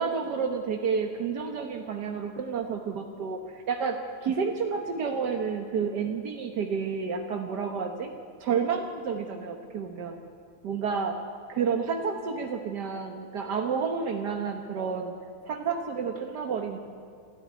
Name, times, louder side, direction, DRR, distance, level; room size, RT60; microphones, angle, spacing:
voice 1, 0.0-8.1 8.4-10.2 10.6-11.2 11.5-15.1 15.4-16.8, right 6 dB, 55° right, 4 dB, 1.2 m, -30 dB
27.5 x 13.5 x 9.5 m, 2.4 s
omnidirectional pair, 3.3 m